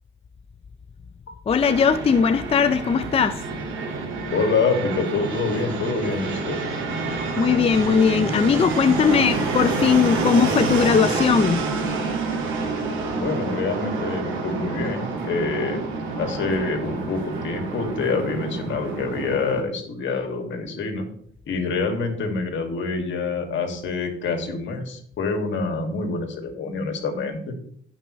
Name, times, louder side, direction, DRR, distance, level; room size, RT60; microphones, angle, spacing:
voice 1, 1.5-3.4 7.4-11.7, left 6 dB, 30° left, 0.4 m, -19 dB
Fixed-wing aircraft airplane, 1.6-19.6, right 3 dB, 90° right, 2.1 m, -28 dB
voice 2, 4.3-6.6 13.1-15.8 16.2-21.1 21.5-27.5, left 4 dB, 70° left, 2.1 m, -26 dB
16.0 x 5.5 x 3.2 m
cardioid pair, 90°, 20 cm